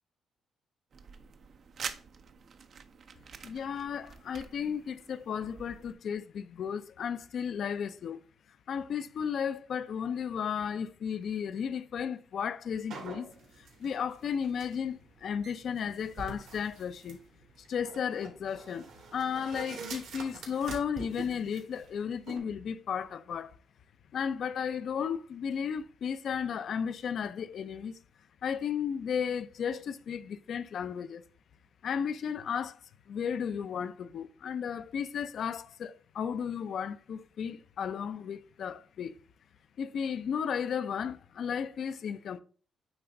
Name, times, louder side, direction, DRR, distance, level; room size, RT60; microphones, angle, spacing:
sound 1, 0.9-5.9, right 6 dB, 55° right, 0.6 m, -46 dB
voice 1, 3.4-8.2 8.7-13.3 13.6-17.2 17.7-23.5 24.1-28.0 28.4-31.2 31.8-32.8 33.1-39.2 39.8-42.4, left 7 dB, 60° left, 0.5 m, -34 dB
sound 2, 12.9-22.4, right 4 dB, 80° right, 2.6 m, -46 dB
8.8 x 3.4 x 3.8 m
cardioid pair, 90°, 0 cm